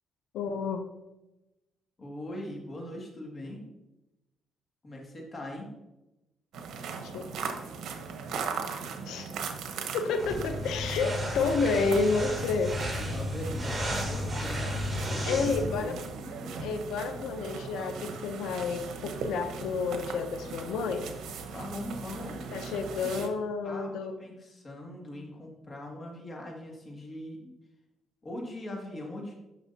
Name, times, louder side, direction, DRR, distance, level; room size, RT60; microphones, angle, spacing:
voice 1, 0.3-0.8 7.0-7.3 9.0-9.3 9.9-12.8 15.2-16.0 16.6-21.1 22.5-24.1, left 4 dB, 85° left, 7 dB, 0.7 m, -30 dB
voice 2, 2.0-3.7 4.8-5.7 13.1-16.7 21.5-23.3 23.6-27.5 28.2-29.3, left 1 dB, 35° left, -1 dB, 2.1 m, -41 dB
sound 1, 6.5-23.3, right 5 dB, 75° right, 1.0 m, -39 dB
sound 2, 10.2-15.8, equal, 15° right, 2.7 m, -33 dB
10.5 x 6.0 x 2.8 m, 0.98 s
cardioid pair, 90°, 0 cm